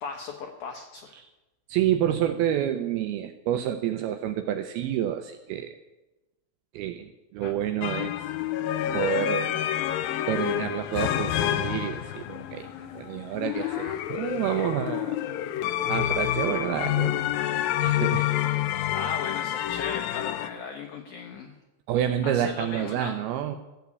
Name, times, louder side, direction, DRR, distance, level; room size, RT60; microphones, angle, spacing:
voice 1, 0.0-1.1 7.4-7.5 12.7-13.0 13.5-14.1 18.9-21.6 22.2-23.1, left 5 dB, 70° left, 2 dB, 2.0 m, -37 dB
voice 2, 1.7-5.8 6.7-8.3 8.9-9.6 10.3-15.2 15.9-17.2 17.8-18.3 21.9-23.6, right 10 dB, 80° right, 8 dB, 2.3 m, -29 dB
sound 1, 7.8-20.5, left 12 dB, 85° left, 2.0 m, -28 dB
14.5 x 7.2 x 8.3 m, 1.0 s
omnidirectional pair, 5.0 m